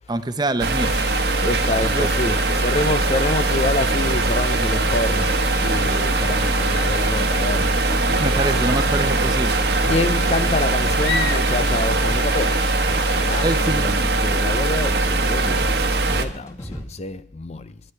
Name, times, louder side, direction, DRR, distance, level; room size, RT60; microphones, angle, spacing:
voice 1, 0.1-1.0 1.9-2.1 8.2-9.7 13.4-13.9, right 2 dB, 25° right, 0.9 m, -25 dB
sound 1, 0.6-16.2, right 2 dB, 65° right, 1.3 m, -21 dB
sound 2, 0.8-13.6, left 4 dB, 75° left, 1.8 m, -34 dB
sound 3, 0.8-16.8, equal, 20° left, 2.1 m, -38 dB
voice 2, 1.4-5.3 5.6-8.0 9.8-17.8, left 2 dB, 40° left, 0.6 m, -27 dB
24.0 x 9.9 x 3.3 m
head